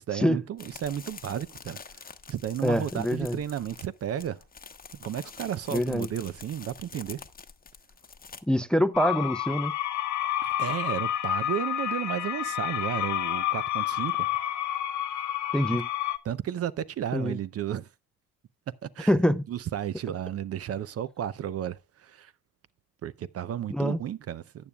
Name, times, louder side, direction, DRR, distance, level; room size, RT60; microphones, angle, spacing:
voice 1, 0.0-2.0 2.3-4.4 5.0-7.2 10.4-14.3 15.7-15.8 16.2-17.9 18.8-19.1 19.5-22.3 23.0-24.7, right 10 dB, 50° right, 0.5 m, -33 dB
sound 1, 0.6-8.4, left 5 dB, 30° left, 0.9 m, -46 dB
voice 2, 2.6-3.4 5.7-6.1 8.5-9.7 15.5-15.9 17.1-17.4 19.1-19.4 23.7-24.0, equal, 5° left, 0.5 m, -25 dB
sound 2, 8.9-16.2, left 11 dB, 70° left, 0.7 m, -29 dB
14.0 x 8.5 x 2.3 m
cardioid pair, 90°, 30 cm